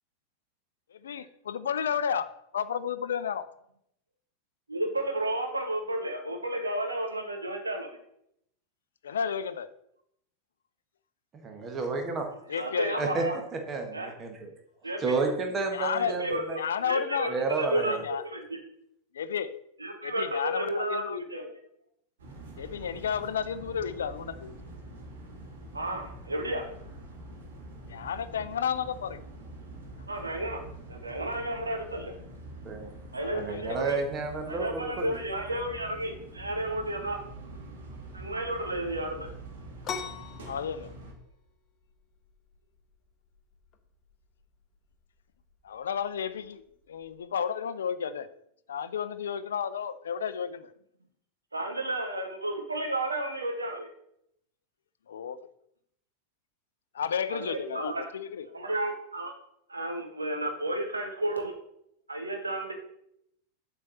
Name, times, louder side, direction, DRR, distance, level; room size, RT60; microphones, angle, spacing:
voice 1, 1.0-2.3 2.5-3.5 9.0-9.7 12.5-13.1 15.7-16.2 16.6-17.3 17.8-18.2 19.1-19.6 20.0-21.2 22.6-24.5 27.9-29.2 33.2-33.8 40.5-40.9 45.6-46.6 46.9-48.3 48.7-50.7 55.1-55.5 56.9-58.5, left 7 dB, 65° left, 13 dB, 0.4 m, -32 dB
voice 2, 4.7-7.9 12.5-13.4 13.9-14.1 14.8-15.2 16.0-18.6 19.8-21.5 25.7-26.7 30.1-32.1 33.1-34.0 34.5-37.2 38.1-39.3 51.5-53.9 57.3-58.1 58.5-59.3 59.7-61.5 62.1-62.7, right 1 dB, 80° right, 3 dB, 1.6 m, -32 dB
voice 3, 11.4-12.3 13.0-13.2 13.7-14.5 15.0-16.6 17.3-18.0 32.6-32.9 33.4-35.2, right 3 dB, 25° right, 4 dB, 1.5 m, -31 dB
sound 1, 22.2-41.1, right 1 dB, 60° right, 2.0 m, -45 dB
sound 2, 39.8-47.2, left 7 dB, 30° left, 1.0 m, -44 dB
7.4 x 4.5 x 6.8 m, 0.75 s
figure-of-eight pair, 90°, 0 cm